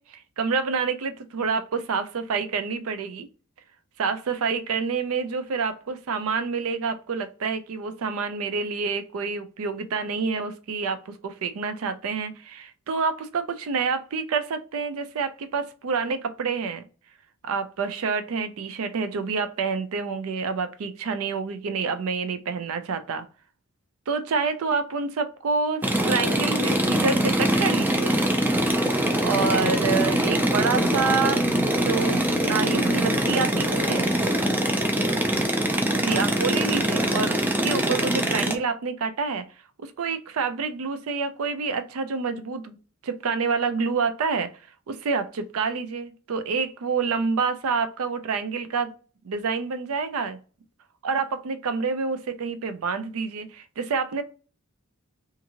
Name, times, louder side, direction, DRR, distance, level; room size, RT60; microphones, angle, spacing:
voice 1, 0.1-3.3 4.0-16.8 17.4-23.3 24.1-28.2 29.2-31.4 31.8-34.1 36.0-39.5 39.8-42.8 43.0-44.5 44.9-48.9 49.2-50.4 51.0-54.2, right 5 dB, 70° right, 0.4 m, -28 dB
sound 1, 25.8-38.5, right 1 dB, 10° right, 0.4 m, -23 dB
2.6 x 2.5 x 2.8 m
head